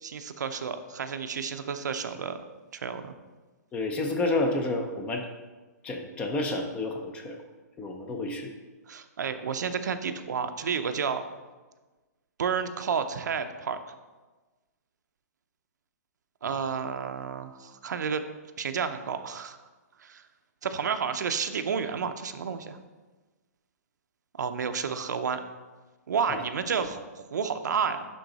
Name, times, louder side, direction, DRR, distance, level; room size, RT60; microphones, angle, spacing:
voice 1, 0.0-2.4 2.7-3.1 8.9-11.2 12.4-13.8 16.4-18.2 18.6-19.6 20.0-20.3 20.6-22.8 24.4-25.4 26.1-28.1, right 6 dB, 80° right, 8 dB, 0.6 m, -31 dB
voice 2, 3.7-5.2 5.8-7.4 7.8-8.5 16.5-16.6 26.3-26.4, left 2 dB, 10° left, 4 dB, 0.5 m, -30 dB
11.0 x 3.8 x 4.0 m, 1.3 s
hypercardioid pair, 160°, 9 cm